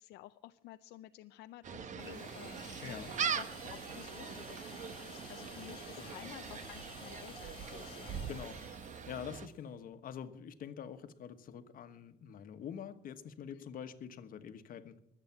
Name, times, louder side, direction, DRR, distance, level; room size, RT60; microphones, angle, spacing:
voice 1, 0.0-8.3 13.5-13.7, left 15 dB, 80° left, 10 dB, 0.5 m, -53 dB
Gull seagull, 1.6-9.5, right 7 dB, 45° right, 1.1 m, -42 dB
sound 1, 2.0-9.6, left 5 dB, 30° left, 2.1 m, -53 dB
voice 2, 2.8-3.1 6.0-6.3 7.9-8.0 8.3-8.6 9.1-15.0, left 8 dB, 55° left, 10 dB, 1.3 m, -46 dB
22.5 x 8.2 x 5.9 m, 0.74 s
cardioid pair, 110°, 17 cm